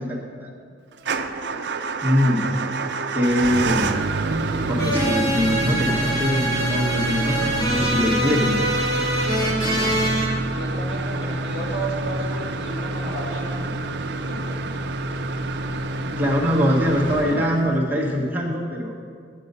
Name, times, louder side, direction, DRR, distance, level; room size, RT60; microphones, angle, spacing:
Motor vehicle (road) / Engine starting / Idling, 1.0-18.0, right 3 dB, 55° right, 0.5 m, -27 dB
voice 1, 2.0-2.5 3.1-4.0 4.7-8.6 9.6-10.0 16.0-18.9, equal, 10° right, -3 dB, 1.0 m, -23 dB
sound 1, 4.8-10.3, right 1 dB, 20° left, 1.4 m, -24 dB
voice 2, 9.4-10.0 10.5-13.8 14.3-14.6, right 1 dB, 80° left, -4 dB, 2.6 m, -33 dB
9.2 x 8.3 x 5.4 m, 2.1 s
head